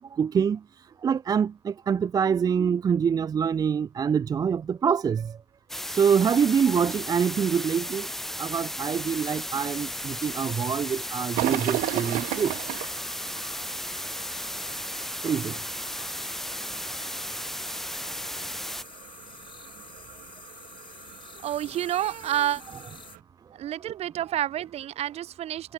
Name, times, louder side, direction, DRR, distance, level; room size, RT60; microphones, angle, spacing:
voice 1, 0.1-0.6 1.0-5.4 5.9-8.1 8.4-12.5 15.2-15.6, right 7 dB, 25° right, 0.5 m, -25 dB
sound 1, 5.7-18.8, equal, ahead, 1.6 m, -35 dB
sound 2, 9.0-23.2, left 8 dB, 35° left, 3.5 m, -48 dB
sound 3, 11.3-23.2, right 22 dB, 75° right, 1.9 m, -37 dB
voice 2, 21.4-22.6 23.6-25.7, right 12 dB, 45° right, 1.0 m, -29 dB
cardioid pair, 120°, 14 cm